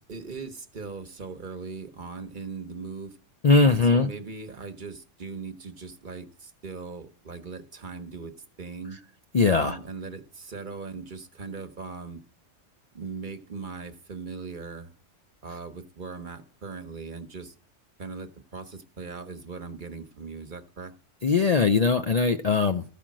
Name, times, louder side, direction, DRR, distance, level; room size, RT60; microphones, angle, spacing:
voice 1, 0.0-3.2 3.7-9.0 9.5-12.2 12.9-14.9 15.4-17.5 18.0-20.9, right 4 dB, 45° right, 1.1 m, -39 dB
voice 2, 3.4-4.1 9.3-9.8 21.2-22.8, left 4 dB, 45° left, 0.5 m, -20 dB
14.5 x 5.0 x 7.5 m
omnidirectional pair, 1.3 m